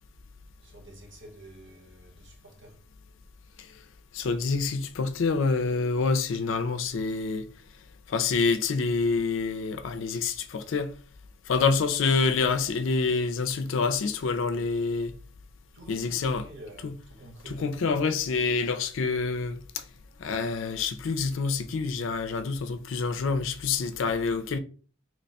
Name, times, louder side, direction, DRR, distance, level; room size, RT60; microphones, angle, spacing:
voice 1, 0.5-2.8 15.7-17.8, right 1 dB, 55° right, 1.1 m, -48 dB
voice 2, 4.1-7.5 8.1-10.9 11.5-15.1 15.9-16.5 16.8-16.9 17.5-19.8 20.2-24.6, left 4 dB, 65° left, 0.4 m, -27 dB
3.0 x 2.2 x 4.0 m
head